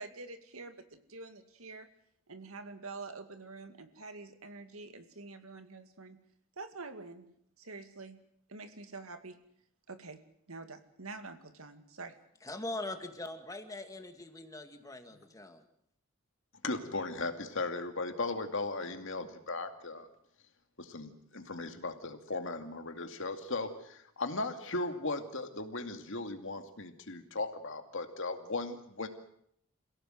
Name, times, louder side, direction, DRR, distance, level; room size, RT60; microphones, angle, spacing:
voice 1, 0.0-1.9 2.3-6.2 6.6-7.3 7.6-8.2 8.5-9.4 9.9-10.2 10.5-12.2, right 3 dB, 80° right, 8 dB, 2.3 m, -46 dB
voice 2, 12.4-15.6, left 2 dB, 15° left, 6 dB, 2.2 m, -42 dB
voice 3, 16.6-20.1 20.8-29.1, left 3 dB, 60° left, 6 dB, 2.4 m, -37 dB
27.5 x 17.0 x 7.9 m, 0.71 s
head